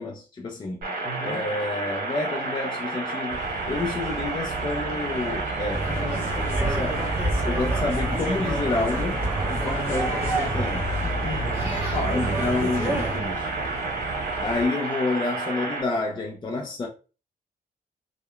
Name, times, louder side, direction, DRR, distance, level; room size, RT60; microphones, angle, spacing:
voice 1, 0.0-0.9 1.2-3.4 3.7-7.0 7.4-10.9 12.1-13.0 14.4-16.9, left 3 dB, 30° left, 0.4 m, -29 dB
sound 1, 0.8-15.8, right 3 dB, 65° right, 0.9 m, -31 dB
voice 2, 1.0-1.4 11.2-13.5, left 2 dB, 55° left, 0.7 m, -33 dB
sound 2, 3.3-14.7, right 2 dB, 50° right, 0.4 m, -34 dB
sound 3, 5.7-13.2, right 2 dB, 10° right, 1.0 m, -29 dB
2.8 x 2.1 x 2.3 m
wide cardioid pair, 120°, 16 cm